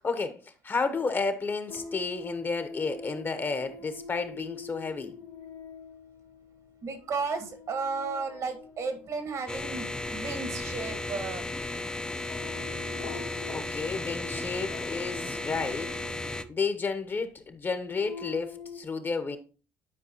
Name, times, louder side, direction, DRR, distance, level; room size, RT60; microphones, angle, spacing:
voice 1, 0.0-5.1 13.1-13.2 13.5-15.9 16.2-19.4, left 4 dB, 35° left, 1.1 m, -32 dB
sound 1, 1.7-16.8 17.5-18.8, left 4 dB, 65° left, 0.8 m, -45 dB
voice 2, 6.8-11.4, right 4 dB, 60° right, 1.7 m, -34 dB
sound 2, 9.5-16.4, left 2 dB, 15° left, 0.6 m, -35 dB
11.0 x 4.6 x 3.0 m
supercardioid pair, 75°, 6 cm